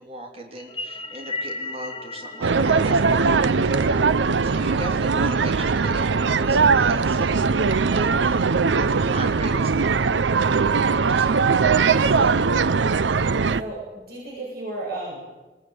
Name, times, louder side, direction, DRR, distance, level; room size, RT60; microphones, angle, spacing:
voice 1, 0.0-12.3, right 1 dB, 35° right, 2 dB, 3.2 m, -39 dB
sound 1, 0.6-5.1, left 3 dB, 30° left, 1.0 m, -36 dB
sound 2, 2.4-13.6, right 5 dB, 90° right, 0.6 m, -20 dB
voice 2, 13.1-15.4, right 2 dB, 55° right, -4 dB, 7.2 m, -34 dB
21.0 x 18.5 x 9.6 m, 1.2 s
head